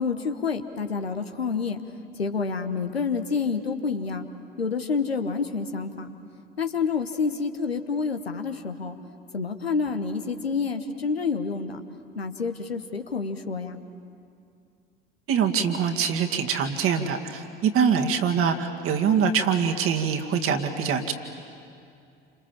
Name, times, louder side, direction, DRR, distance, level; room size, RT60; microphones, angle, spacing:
voice 1, 0.0-1.8 2.2-4.3 4.6-6.1 6.6-9.0 9.3-11.8 12.2-13.8, left 5 dB, 85° left, 7 dB, 1.2 m, -28 dB
voice 2, 15.3-21.1, right 7 dB, 50° right, 5 dB, 2.1 m, -24 dB
29.0 x 26.5 x 7.3 m, 2.5 s
figure-of-eight pair, 60°, 30 cm